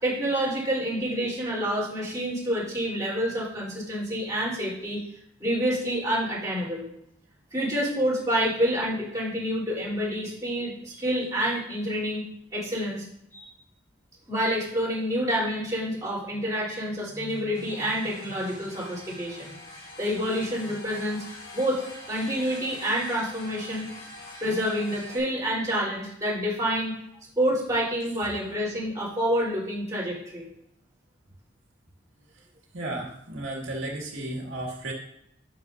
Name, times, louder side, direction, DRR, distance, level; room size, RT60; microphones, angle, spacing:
voice 1, 0.0-5.0 5.4-6.9 7.5-12.2 12.5-13.1 13.3-13.5 14.3-19.5 20.0-21.2 21.5-23.9 24.4-26.9 27.4-30.5, equal, 15° right, -7 dB, 3.8 m, -28 dB
sound 1, 17.5-25.2, left 1 dB, 90° left, 3.4 m, -44 dB
voice 2, 32.7-34.9, right 1 dB, 90° right, -2 dB, 2.1 m, -34 dB
10.5 x 7.5 x 2.7 m, 0.77 s
head